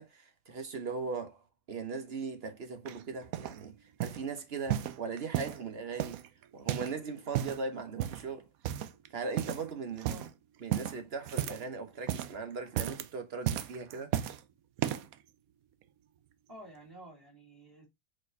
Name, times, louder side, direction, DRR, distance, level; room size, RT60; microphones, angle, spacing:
voice 1, 0.0-3.8 4.0-6.2 6.5-8.5 9.1-10.2 10.6-14.2, right 4 dB, 50° right, 1.0 m, -39 dB
sound 1, 2.9-3.6 4.0-4.3 4.7-5.6 6.0-7.0 7.2-7.6 8.0-8.3 8.6-9.1 9.4-9.7 10.0-10.3 10.7-11.7 12.0-12.4 12.7-13.1 13.5-14.4 14.8-15.2 15.8-15.9, right 11 dB, 75° right, 1.0 m, -34 dB
voice 2, 16.5-17.8, right 1 dB, 15° right, 2.1 m, -50 dB
5.0 x 4.2 x 2.5 m
omnidirectional pair, 1.5 m